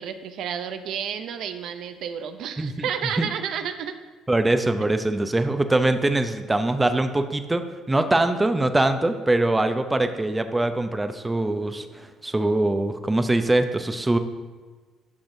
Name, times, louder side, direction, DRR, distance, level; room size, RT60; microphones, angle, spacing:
voice 1, 0.0-4.0, right 8 dB, 70° right, 9 dB, 0.4 m, -31 dB
voice 2, 4.3-14.2, right 2 dB, 15° right, 8 dB, 0.6 m, -23 dB
10.5 x 6.0 x 2.6 m, 1.4 s
supercardioid pair, 85°, 0 cm